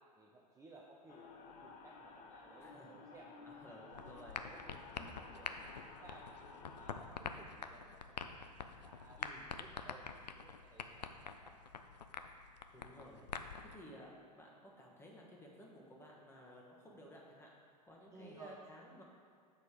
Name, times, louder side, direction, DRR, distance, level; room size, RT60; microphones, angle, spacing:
voice 1, 0.2-3.4 3.9-6.4 6.7-8.6 8.8-9.2 9.6-11.6 18.1-18.6, right 3 dB, 15° right, -2 dB, 0.5 m, -59 dB
sound 1, 1.1-7.0, left 4 dB, 35° left, 0.8 m, -55 dB
voice 2, 2.6-3.0 3.5-4.5 9.2-9.5 12.7-13.2 13.6-17.5 17.8-19.0, equal, 10° left, -2 dB, 1.2 m, -56 dB
sound 2, 3.9-13.7, left 6 dB, 80° left, 0.4 m, -47 dB
6.8 x 4.1 x 4.8 m, 2.1 s
figure-of-eight pair, 90°, 21 cm